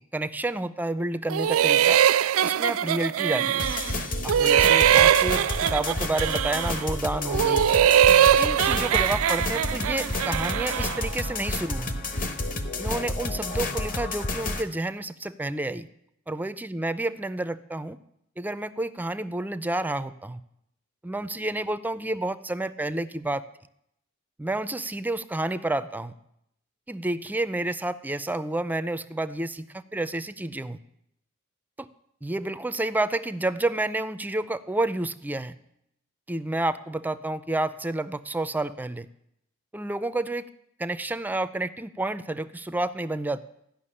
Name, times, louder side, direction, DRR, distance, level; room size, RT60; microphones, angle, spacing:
voice 1, 0.1-2.0 2.4-3.7 4.2-7.6 8.4-12.0 12.8-15.9 16.3-18.0 18.4-20.4 21.0-23.4 24.4-26.1 26.9-30.8 31.8-31.9 32.2-35.5 36.3-39.1 39.7-40.5 40.8-43.4, right 2 dB, 10° right, 13 dB, 0.4 m, -30 dB
sound 1, 1.3-4.0 4.3-6.8 7.3-11.0, right 10 dB, 85° right, 0.4 m, -21 dB
sound 2, 3.6-14.6, left 2 dB, 40° left, 1.1 m, -30 dB
14.0 x 5.9 x 9.9 m, 0.78 s
head